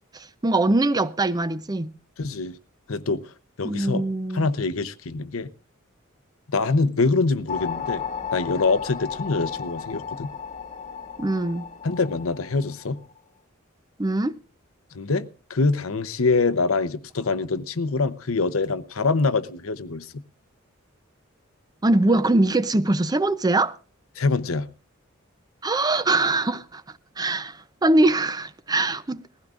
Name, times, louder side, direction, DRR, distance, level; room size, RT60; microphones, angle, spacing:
voice 1, 0.1-1.9 3.6-4.5 11.2-11.7 14.0-14.4 21.8-23.7 25.6-26.8 27.2-29.2, right 2 dB, 20° right, 0.6 m, -22 dB
voice 2, 2.2-2.6 2.9-3.3 3.6-4.0 4.3-5.5 6.5-8.0 8.3-10.3 11.8-13.0 14.9-20.1 24.2-24.7, left 3 dB, 80° left, 0.8 m, -24 dB
sound 1, 7.5-13.2, left 7 dB, 35° left, 1.2 m, -34 dB
20.5 x 15.5 x 2.5 m
head